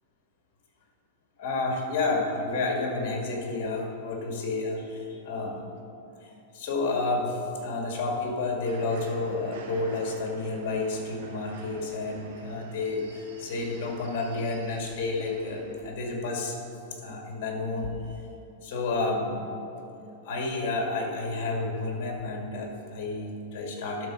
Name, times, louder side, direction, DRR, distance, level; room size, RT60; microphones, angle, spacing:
voice 1, 1.4-5.7 6.2-16.6 17.0-18.2 18.6-19.7 20.2-24.1, left 3 dB, 50° left, 1 dB, 2.0 m, -30 dB
sound 1, 8.6-15.9, right 3 dB, 70° right, 1.6 m, -48 dB
12.0 x 4.1 x 6.2 m, 2.8 s
supercardioid pair, 150°, 0 cm